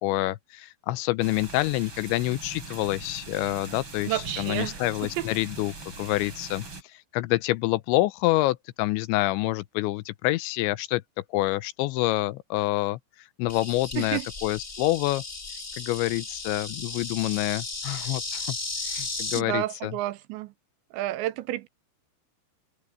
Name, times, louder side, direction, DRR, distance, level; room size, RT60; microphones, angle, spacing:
voice 1, 0.0-11.0 11.3-13.0 13.4-15.2 15.8-18.6 18.8-19.9, left 18 dB, 80° left, 2.8 m, -27 dB
sound 1, 1.2-6.8, right 3 dB, 25° right, 4.7 m, -41 dB
voice 2, 4.0-5.3 14.0-14.3 18.9-19.1 19.3-20.5 20.9-21.7, right 15 dB, 80° right, 2.9 m, -31 dB
Insect, 13.5-19.4, left 3 dB, 30° left, 1.4 m, -35 dB
omnidirectional pair, 5.4 m